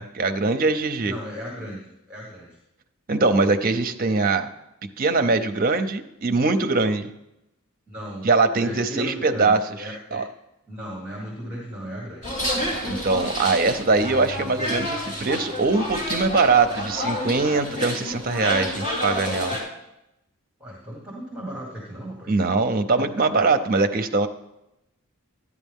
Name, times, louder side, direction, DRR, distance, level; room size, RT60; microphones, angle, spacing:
voice 1, 0.0-1.1 3.1-4.5 5.0-7.1 8.2-9.6 10.1-10.2 12.8-19.6 22.3-24.3, right 3 dB, 40° right, 8 dB, 0.7 m, -22 dB
voice 2, 1.0-2.6 5.7-5.8 7.9-8.3 8.6-10.2 10.7-12.3 20.6-22.3, equal, 5° right, -3 dB, 1.9 m, -36 dB
sound 1, 12.2-19.6, left 1 dB, 35° left, 3.3 m, -29 dB
12.5 x 9.7 x 3.6 m, 0.88 s
head